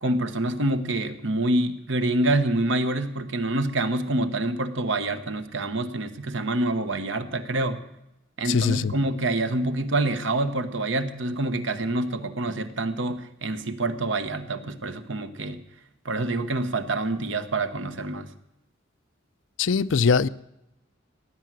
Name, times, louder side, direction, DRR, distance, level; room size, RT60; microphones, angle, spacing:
voice 1, 0.0-7.8 8.4-15.6 16.0-18.3, right 2 dB, 75° right, 1.2 m, -26 dB
voice 2, 8.4-8.9 19.6-20.3, left 5 dB, 75° left, 0.5 m, -21 dB
17.0 x 9.4 x 7.6 m
head